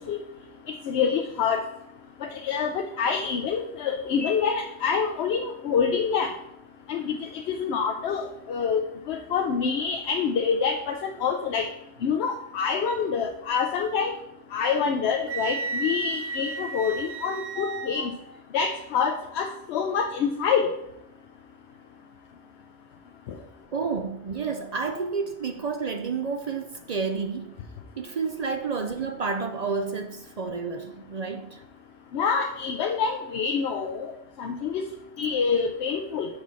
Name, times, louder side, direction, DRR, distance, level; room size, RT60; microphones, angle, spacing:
voice 1, 0.9-1.6 2.2-6.3 6.9-11.7 12.0-14.1 14.5-18.1 18.5-20.7 32.1-34.1 34.4-34.8 35.2-36.3, left 6 dB, 85° left, 0.9 m, -26 dB
Wind instrument woodwind instrument, 15.3-18.1, right 4 dB, 85° right, 0.9 m, -33 dB
voice 2, 17.6-18.0 23.7-27.6 28.0-31.6, right 5 dB, 50° right, 0.5 m, -30 dB
6.2 x 4.1 x 6.1 m
omnidirectional pair, 1.1 m